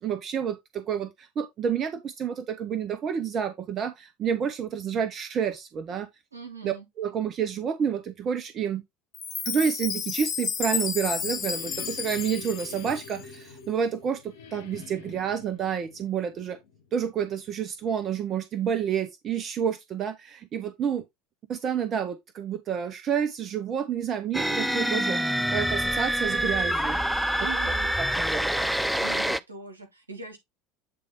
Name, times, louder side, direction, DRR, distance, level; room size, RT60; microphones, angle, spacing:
voice 1, 0.0-6.1 6.6-8.8 9.4-16.6 16.9-21.0 21.5-27.0 28.0-28.7, right 7 dB, 40° right, 0.8 m, -29 dB
voice 2, 6.3-6.9 27.4-27.9 29.0-30.4, right 5 dB, 85° right, 1.5 m, -41 dB
Chime, 9.1-13.4, left 7 dB, 35° left, 0.8 m, -32 dB
sound 1, 10.6-17.3, left 6 dB, 65° left, 1.0 m, -46 dB
sound 2, 24.3-29.4, equal, ahead, 0.4 m, -26 dB
8.5 x 3.3 x 3.7 m
figure-of-eight pair, 70°, 0 cm